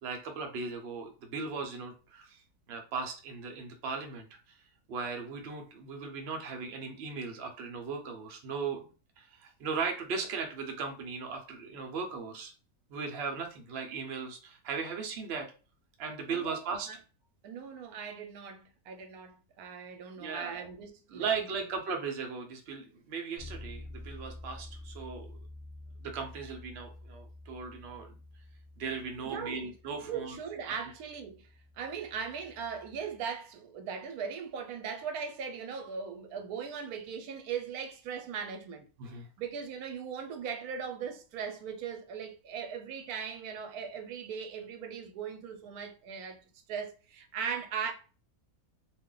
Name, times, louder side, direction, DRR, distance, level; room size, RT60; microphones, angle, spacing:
voice 1, 0.0-2.4 2.7-4.3 4.9-8.8 9.2-12.5 12.9-15.5 16.0-16.9 20.2-20.6 21.1-25.3 26.0-28.2 28.8-30.4 39.0-39.3, right 5 dB, 55° right, 0.8 m, -37 dB
voice 2, 16.3-17.0 17.4-21.5 29.2-29.7 30.1-31.5 31.8-38.9 39.1-46.4 46.7-47.9, right 6 dB, 90° right, 1.1 m, -39 dB
Bass guitar, 23.4-33.2, left 1 dB, ahead, 0.6 m, -49 dB
2.5 x 2.2 x 3.7 m
omnidirectional pair, 1.6 m